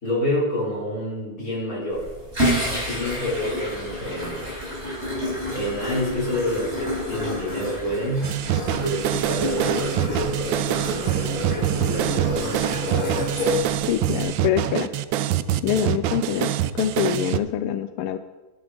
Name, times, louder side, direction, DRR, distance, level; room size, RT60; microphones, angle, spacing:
voice 1, 0.0-2.1 2.7-4.4 5.5-8.4 8.8-13.2, left 1 dB, 40° left, -6 dB, 5.3 m, -28 dB
sound 1, 1.9-14.2, left 1 dB, 30° right, 5.8 m, -29 dB
sound 2, 8.2-17.4, right 12 dB, 75° right, 1.2 m, -25 dB
voice 2, 13.9-14.9 15.6-18.2, left 10 dB, 90° left, 10 dB, 1.6 m, -25 dB
13.0 x 11.5 x 5.2 m, 1.2 s
omnidirectional pair, 2.4 m